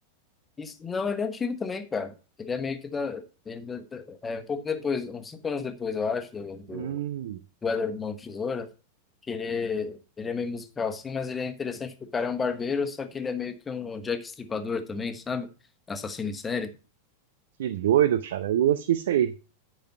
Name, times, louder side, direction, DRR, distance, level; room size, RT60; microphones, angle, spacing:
voice 1, 0.6-7.0 7.6-8.7 9.3-15.5 15.9-16.7, left 5 dB, 15° left, 9 dB, 1.2 m, -31 dB
voice 2, 6.7-7.4 17.6-19.3, right 11 dB, 60° right, 14 dB, 0.6 m, -24 dB
10.5 x 5.5 x 5.5 m, 0.34 s
figure-of-eight pair, 90°, 0 cm